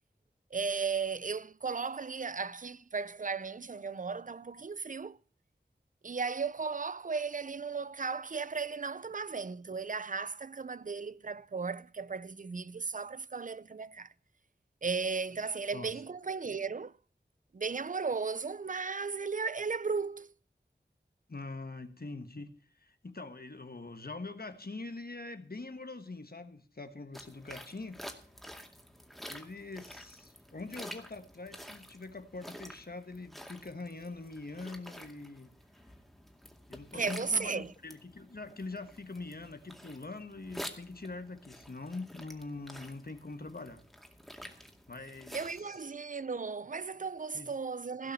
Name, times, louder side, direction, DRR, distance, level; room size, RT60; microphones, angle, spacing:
voice 1, 0.5-5.2 6.0-14.1 14.8-16.9 17.5-20.3 36.9-37.7 45.3-48.1, right 5 dB, 45° right, 0.5 m, -35 dB
voice 2, 21.3-28.0 29.3-35.5 36.7-43.8 44.9-45.4 45.7-45.8 47.3-47.5, left 3 dB, 60° left, 1.4 m, -43 dB
sound 1, 27.1-45.6, equal, ahead, 2.2 m, -49 dB
16.5 x 5.6 x 8.4 m
wide cardioid pair, 45°, 18 cm